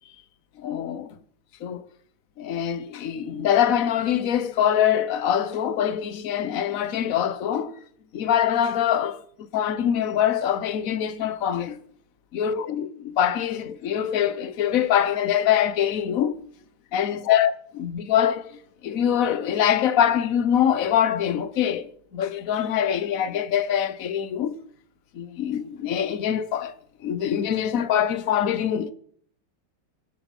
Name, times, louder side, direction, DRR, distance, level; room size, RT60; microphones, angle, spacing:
voice 1, 0.6-1.1 1.6-1.8 2.4-7.7 8.1-11.8 12.3-16.4 16.9-24.6 25.1-26.7 27.0-28.9, left 9 dB, 50° left, 1.1 m, -24 dB
25.0 x 8.6 x 5.4 m
omnidirectional pair, 2.4 m